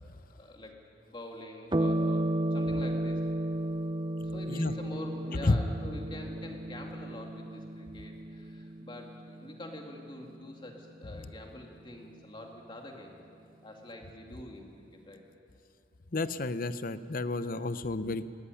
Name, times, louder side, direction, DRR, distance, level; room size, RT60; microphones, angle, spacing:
voice 1, 0.4-0.7 1.1-3.2 4.2-13.2 13.6-15.2, left 1 dB, 25° left, 1 dB, 2.5 m, -45 dB
sound 1, 1.7-10.6, right 1 dB, 25° right, 0.7 m, -33 dB
voice 2, 16.1-18.2, left 2 dB, 50° left, 13 dB, 0.7 m, -30 dB
18.5 x 17.0 x 9.8 m, 2.5 s
head